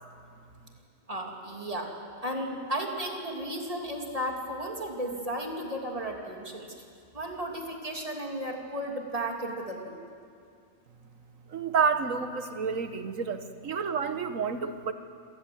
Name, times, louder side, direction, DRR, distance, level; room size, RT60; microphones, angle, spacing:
voice 1, 1.1-1.9 2.2-6.7 7.1-10.0, right 1 dB, 25° right, 0 dB, 2.9 m, -34 dB
voice 2, 11.5-14.9, right 6 dB, 70° right, 9 dB, 1.6 m, -29 dB
26.5 x 18.5 x 7.9 m, 2.3 s
omnidirectional pair, 1.4 m